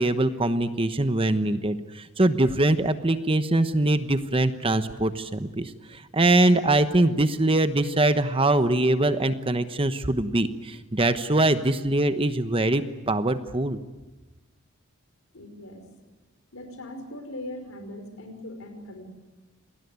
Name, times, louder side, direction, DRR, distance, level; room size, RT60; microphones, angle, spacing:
voice 1, 0.0-13.8, right 2 dB, 25° right, 10 dB, 1.1 m, -23 dB
voice 2, 15.3-15.9 16.5-19.0, left 1 dB, 70° left, 7 dB, 5.1 m, -40 dB
27.5 x 20.0 x 9.5 m, 1.1 s
head